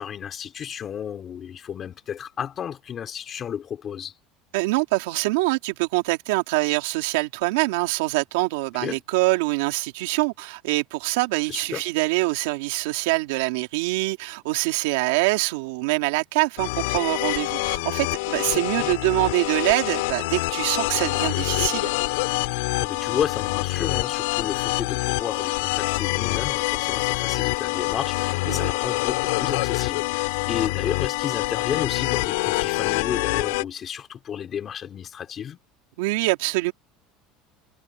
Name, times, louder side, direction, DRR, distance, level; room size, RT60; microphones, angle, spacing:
voice 1, 0.0-4.1 8.8-9.0 11.5-11.8 18.5-18.9 22.8-35.6, left 8 dB, 30° left, 5.0 m, -32 dB
voice 2, 4.5-21.9 28.5-28.7 36.0-36.7, right 22 dB, 85° right, 2.9 m, -24 dB
sound 1, 16.6-33.6, left 25 dB, 85° left, 6.4 m, -26 dB
cardioid pair, 160°, 0 cm